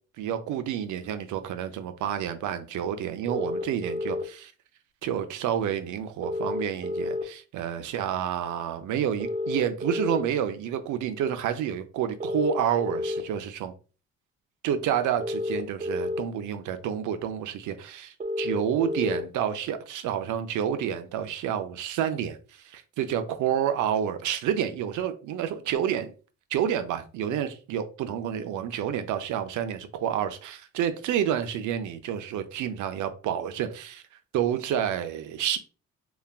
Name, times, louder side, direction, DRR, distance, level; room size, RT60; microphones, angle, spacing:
voice 1, 0.2-4.5 5.0-13.7 14.6-22.4 22.6-26.1 26.5-34.0 34.3-35.6, right 9 dB, 80° right, 0.5 m, -29 dB
sound 1, 3.3-4.2 6.2-7.2 9.2-10.2 12.2-13.2 15.2-16.2 18.2-19.2, left 1 dB, 25° right, 0.4 m, -30 dB
3.3 x 2.2 x 2.3 m
cardioid pair, 90°, 30 cm